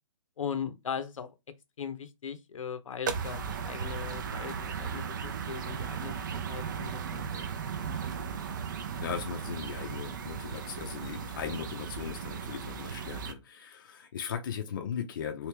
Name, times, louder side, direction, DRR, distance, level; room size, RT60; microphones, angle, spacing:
voice 1, 0.4-1.3 1.8-7.5 7.8-7.9, left 7 dB, 80° left, 0.8 m, -39 dB
sound 1, 3.1-13.3, right 6 dB, 40° right, 0.5 m, -36 dB
voice 2, 9.0-15.5, left 8 dB, 40° left, 0.6 m, -38 dB
3.2 x 2.8 x 3.3 m
hypercardioid pair, 165°, 17 cm